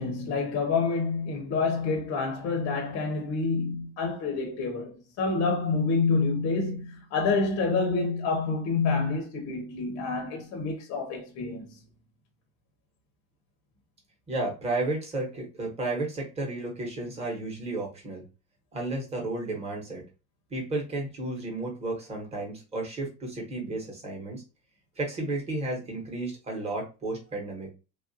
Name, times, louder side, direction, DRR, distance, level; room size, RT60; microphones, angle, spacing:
voice 1, 0.0-11.8, left 4 dB, 40° left, 0.6 m, -28 dB
voice 2, 14.3-18.2 18.7-20.0 20.5-24.4 25.0-27.7, right 2 dB, 15° right, 0.9 m, -32 dB
3.2 x 2.4 x 2.6 m
cardioid pair, 170°, 37 cm